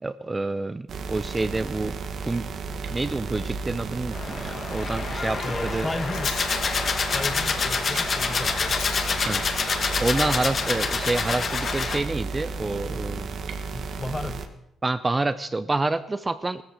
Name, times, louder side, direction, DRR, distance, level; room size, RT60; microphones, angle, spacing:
voice 1, 0.0-2.5 2.9-5.9 9.2-9.4 10.0-13.4 14.8-16.6, right 2 dB, 20° right, 12 dB, 0.6 m, -28 dB
sound 1, 0.9-14.5, right 4 dB, 60° right, 1.6 m, -33 dB
Rattle, 3.1-13.0, left 6 dB, 80° left, 5.1 m, -45 dB
sound 2, 4.1-12.0, left 5 dB, 45° left, 1.9 m, -27 dB
voice 2, 5.4-6.4 7.0-9.2 13.7-14.5, left 2 dB, 15° left, 11 dB, 1.3 m, -34 dB
16.0 x 14.0 x 6.3 m, 0.79 s
cardioid pair, 90°, 0 cm